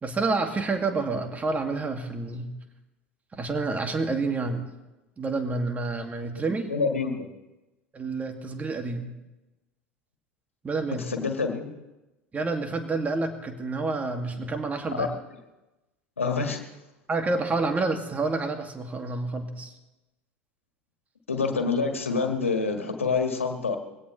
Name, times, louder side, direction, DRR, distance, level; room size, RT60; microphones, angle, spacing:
voice 1, 0.0-2.5 3.3-4.6 5.2-6.7 7.9-9.1 10.6-11.0 12.3-15.1 17.1-19.7, right 3 dB, 20° right, 5 dB, 2.3 m, -28 dB
voice 2, 6.7-7.2 11.0-11.6 14.9-15.2 16.2-16.6 21.3-23.8, left 4 dB, 85° left, 4 dB, 1.7 m, -27 dB
23.0 x 17.0 x 3.3 m, 1.0 s
figure-of-eight pair, 75°, 7 cm